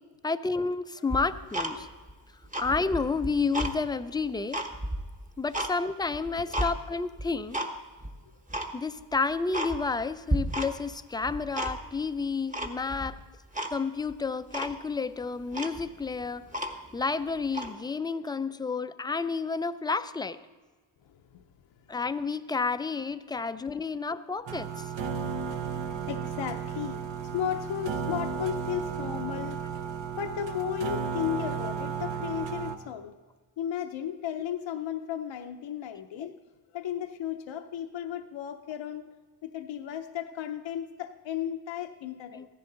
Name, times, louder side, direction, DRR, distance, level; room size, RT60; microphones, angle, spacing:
voice 1, 0.2-1.9 2.6-4.6 5.4-7.6 8.7-13.2 13.7-16.5 16.9-20.4 21.9-24.9 36.2-36.4 42.3-42.5, left 4 dB, 10° left, 12 dB, 0.4 m, -30 dB
Tick-tock, 1.1-2.1 2.4-3.8 4.2-5.7 6.1-6.7 7.2-7.7 8.0-8.1 8.5-8.7 9.1-9.2 9.5-10.0 10.3-10.9 11.2-12.0 12.5-13.1 13.5-13.7 14.1-14.2 14.5-14.8 15.2-15.3 15.5-17.0 17.5-17.7, right 1 dB, 15° right, 1.1 m, -32 dB
sound 1, 24.5-32.8, right 6 dB, 75° right, 1.0 m, -34 dB
voice 2, 26.1-33.1 33.6-36.3 36.7-39.0 39.4-42.4, left 10 dB, 75° left, 6 dB, 0.7 m, -34 dB
14.5 x 10.5 x 3.9 m, 1.3 s
cardioid pair, 65°, 45 cm